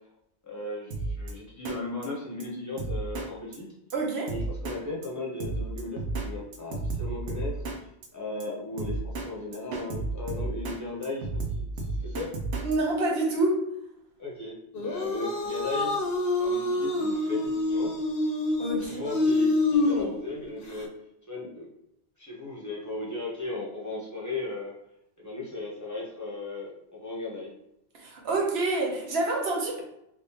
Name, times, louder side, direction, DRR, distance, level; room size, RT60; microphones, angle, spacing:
voice 1, 0.4-3.7 4.3-7.6 8.1-12.3 14.2-17.9 18.8-20.9 21.3-21.7 22.2-24.7 25.2-27.5, left 2 dB, 15° left, -4 dB, 0.8 m, -36 dB
Drum kit, 0.9-1.3 1.7-1.8 2.0-2.1 2.4-2.5 2.8-3.3 3.5-3.6 3.9-4.0 4.3-4.8 5.0-5.1 5.4-6.3 6.5-7.8 8.0-8.1 8.4-8.5 8.8-9.3 9.5-10.8 11.0-12.8, right 2 dB, 85° right, 0.9 m, -32 dB
voice 2, 3.9-4.3 12.6-13.6 18.6-19.0 27.9-29.8, right 2 dB, 65° right, 0 dB, 1.1 m, -27 dB
sound 1, 14.7-20.8, left 2 dB, 60° left, 0.8 m, -27 dB
3.5 x 2.6 x 2.9 m, 0.80 s
omnidirectional pair, 1.1 m